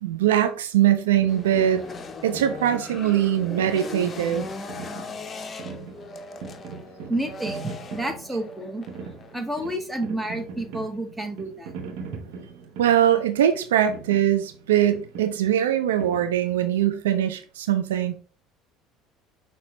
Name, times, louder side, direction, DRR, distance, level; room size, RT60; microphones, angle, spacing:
voice 1, 0.0-1.8 2.2-4.5 12.8-18.2, right 10 dB, 90° right, 0.4 m, -22 dB
sound 1, 1.1-16.9, right 5 dB, 75° right, 0.9 m, -41 dB
sound 2, 1.3-9.3, left 3 dB, 35° left, 0.6 m, -39 dB
voice 2, 7.1-8.8 9.3-11.7, right 1 dB, 10° right, 1.2 m, -30 dB
5.9 x 2.8 x 3.1 m
hypercardioid pair, 75°, 0 cm